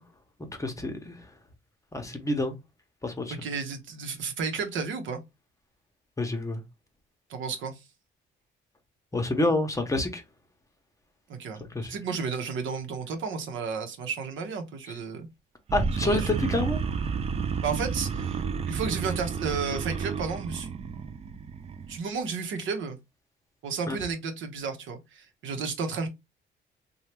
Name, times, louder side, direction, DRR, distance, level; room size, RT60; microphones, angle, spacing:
voice 1, 0.6-1.2 1.9-2.6 3.0-3.4 6.2-6.6 9.1-10.2 11.7-12.0 15.7-17.1 23.9-24.0, left 2 dB, 15° left, 0.8 m, -28 dB
voice 2, 3.3-5.2 7.3-7.8 11.3-15.3 16.0-16.4 17.6-20.7 21.9-23.0 23.6-26.1, right 5 dB, 75° right, 0.8 m, -32 dB
sound 1, 15.7-22.0, right 6 dB, 30° right, 0.3 m, -31 dB
2.8 x 2.3 x 3.2 m
cardioid pair, 90°, 20 cm